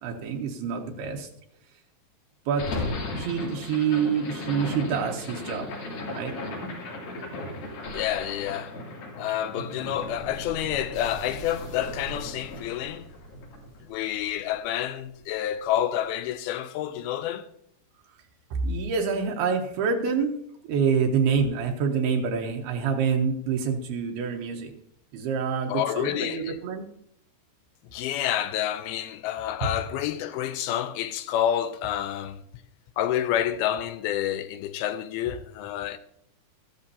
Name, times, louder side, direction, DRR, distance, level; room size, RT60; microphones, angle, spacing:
voice 1, 0.0-1.3 2.5-2.7 3.1-5.6 6.1-6.4 18.5-20.3 20.7-24.7 25.1-26.8, right 6 dB, 80° right, 2.8 m, -26 dB
sound 1, 2.5-14.7, left 2 dB, 65° left, 4.3 m, -36 dB
voice 2, 7.9-8.8 9.2-13.1 13.9-17.5 25.7-26.6 27.9-32.4 33.0-36.0, left 11 dB, 80° left, 2.4 m, -28 dB
14.0 x 13.0 x 2.8 m
omnidirectional pair, 4.6 m